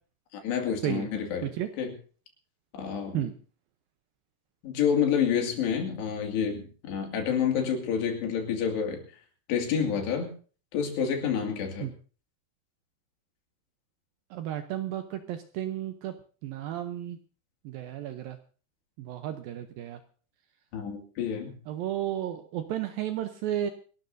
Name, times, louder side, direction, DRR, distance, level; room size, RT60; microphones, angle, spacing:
voice 1, 0.3-1.9 2.7-3.3 4.6-9.0 9.5-10.3 10.7-11.9 20.7-21.6, left 7 dB, 80° left, 3 dB, 4.4 m, -28 dB
voice 2, 14.3-16.1 16.4-17.2 17.7-18.4 19.0-20.0 21.7-23.7, right 11 dB, 75° right, 8 dB, 2.2 m, -33 dB
28.0 x 12.5 x 2.7 m, 0.40 s
omnidirectional pair, 4.9 m